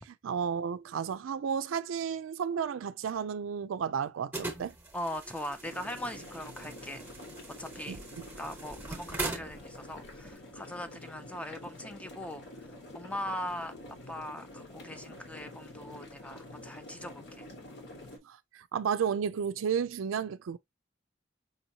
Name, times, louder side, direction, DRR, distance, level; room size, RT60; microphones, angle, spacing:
voice 1, 0.0-4.7 7.9-8.0 18.2-20.6, right 7 dB, 90° right, 0.4 m, -32 dB
sound 1, 4.3-10.3, right 2 dB, 10° right, 0.9 m, -41 dB
voice 2, 4.9-7.1 7.6-8.0 8.4-13.7 14.1-17.5, left 1 dB, 5° left, 0.5 m, -40 dB
sound 2, 5.6-18.2, left 1 dB, 60° left, 1.1 m, -48 dB
5.1 x 2.8 x 2.7 m
head